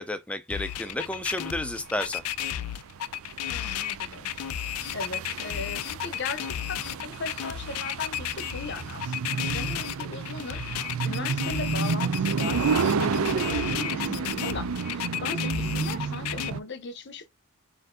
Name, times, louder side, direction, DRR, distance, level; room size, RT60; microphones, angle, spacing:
voice 1, 0.0-2.2, left 1 dB, 5° left, 0.3 m, -31 dB
sound 1, 0.5-16.5, left 11 dB, 85° left, 0.3 m, -33 dB
sound 2, 0.8-16.6, right 5 dB, 70° right, 0.4 m, -31 dB
voice 2, 3.5-4.4 4.9-17.3, left 3 dB, 50° left, 0.7 m, -38 dB
4.3 x 2.6 x 3.7 m
head